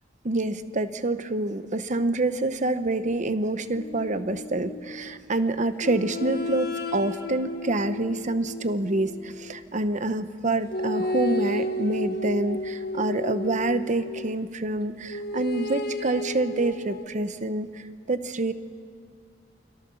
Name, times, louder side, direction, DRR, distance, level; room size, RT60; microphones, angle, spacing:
voice 1, 0.2-18.5, right 2 dB, 45° right, 11 dB, 0.9 m, -27 dB
sound 1, 3.7-5.2 5.8-9.7 10.7-14.4 15.1-17.1, left 1 dB, 60° left, 1.5 m, -32 dB
28.5 x 22.0 x 7.1 m, 2.3 s
head